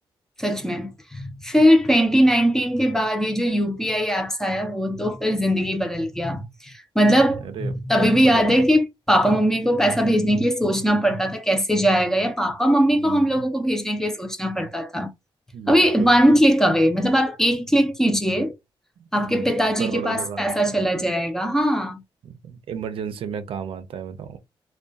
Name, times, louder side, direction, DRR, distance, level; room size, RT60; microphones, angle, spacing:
voice 1, 0.4-15.1 15.7-18.5 19.1-22.0, equal, 5° left, 0.5 m, -20 dB
voice 2, 7.4-8.6 12.9-13.3 15.5-16.1 19.0-19.5 19.8-20.8 22.2-24.4, right 7 dB, 75° right, 0.5 m, -34 dB
2.3 x 2.2 x 2.6 m
cardioid pair, 115°, 9 cm